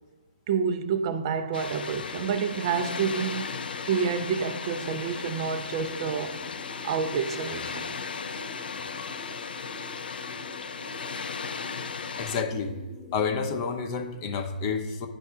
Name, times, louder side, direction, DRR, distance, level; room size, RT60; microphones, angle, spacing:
voice 1, 0.5-3.6 3.9-6.4 6.8-7.9, right 6 dB, 35° right, 0.4 m, -28 dB
Water, 1.5-12.4, left 5 dB, 75° left, 0.4 m, -36 dB
sound 1, 1.8-13.3, left 1 dB, 10° right, 0.8 m, -47 dB
voice 2, 12.2-12.8 13.1-15.1, left 5 dB, 30° left, 0.6 m, -29 dB
11.0 x 4.2 x 2.3 m
hypercardioid pair, 145°, 5 cm